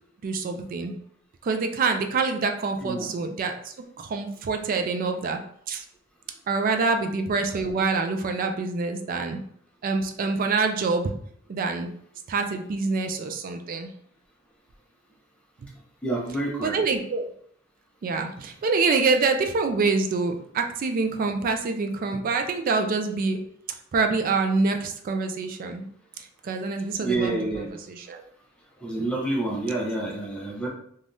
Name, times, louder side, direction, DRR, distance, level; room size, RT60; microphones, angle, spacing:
voice 1, 0.2-0.9 1.4-5.4 5.7-5.9 6.5-9.4 9.8-11.1 11.5-11.9 12.3-13.9 16.6-17.3 18.0-23.4 23.9-25.9 26.4-28.2 30.0-30.1, right 4 dB, 45° right, 5 dB, 0.3 m, -26 dB
voice 2, 16.0-16.8 27.0-27.7 28.8-30.7, right 2 dB, 5° left, -2 dB, 0.6 m, -28 dB
3.3 x 2.3 x 2.6 m, 0.65 s
head